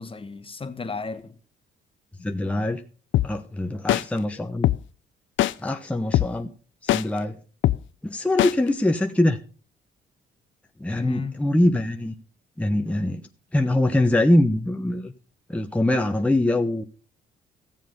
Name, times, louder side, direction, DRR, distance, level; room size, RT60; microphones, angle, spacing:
voice 1, 0.0-1.4 2.2-2.7 11.0-11.5, left 4 dB, 25° left, 1.3 m, -35 dB
voice 2, 2.2-2.8 3.2-4.7 5.6-6.5 6.8-7.4 8.0-9.4 10.8-12.1 12.6-13.2 13.5-15.1 15.5-16.8, left 1 dB, 5° left, 1.0 m, -23 dB
sound 1, 3.1-3.3 3.9-4.0 4.6-4.8 5.4-5.5 6.1-6.3 6.9-7.0 7.6-7.8 8.4-8.5, left 14 dB, 75° left, 0.5 m, -19 dB
15.5 x 7.5 x 5.3 m
cardioid pair, 90°, 20 cm